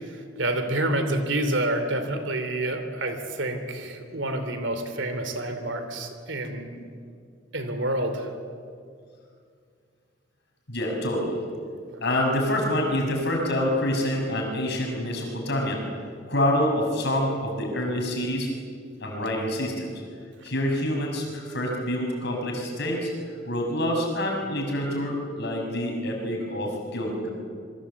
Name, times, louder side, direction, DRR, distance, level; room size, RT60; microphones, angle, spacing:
voice 1, 0.4-6.8 7.5-8.3, right 1 dB, 70° right, 8 dB, 3.0 m, -28 dB
voice 2, 10.7-11.4 12.0-15.8 16.3-18.5 19.0-19.9 20.4-23.1 23.4-27.3, left 1 dB, 60° left, 1 dB, 6.3 m, -26 dB
27.0 x 22.5 x 8.3 m, 2.2 s
head